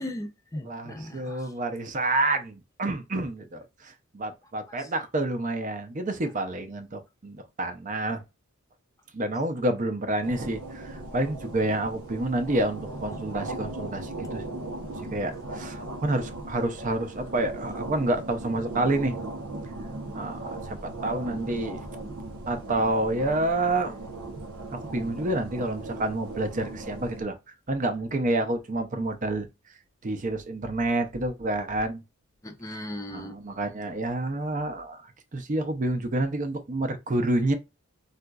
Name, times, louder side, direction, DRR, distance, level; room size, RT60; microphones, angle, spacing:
voice 1, 0.0-1.5 32.4-33.4, left 1 dB, 15° left, 0.5 m, -37 dB
voice 2, 0.6-8.2 9.1-14.4 15.1-19.2 20.1-21.8 22.5-24.1 24.7-27.4 27.7-29.5 30.0-32.0 33.1-37.5, right 2 dB, 40° right, 0.6 m, -28 dB
sound 1, 10.2-27.2, right 2 dB, 90° right, 0.8 m, -38 dB
3.9 x 2.4 x 2.3 m
head